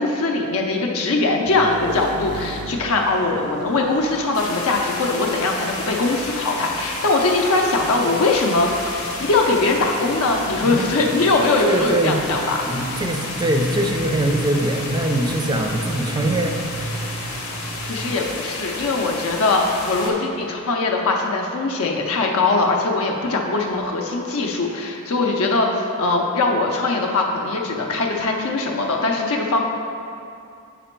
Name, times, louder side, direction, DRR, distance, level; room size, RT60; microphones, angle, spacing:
voice 1, 0.0-12.6 17.9-29.6, left 3 dB, 70° left, 1 dB, 0.5 m, -21 dB
sound 1, 1.4-18.2, right 2 dB, 85° right, 0.5 m, -35 dB
sound 2, 4.3-20.1, left 2 dB, 90° left, 0.9 m, -31 dB
voice 2, 10.6-11.0 11.6-12.2 12.6-16.6, right 1 dB, 20° right, 4 dB, 0.4 m, -22 dB
5.1 x 4.9 x 4.4 m, 2.5 s
head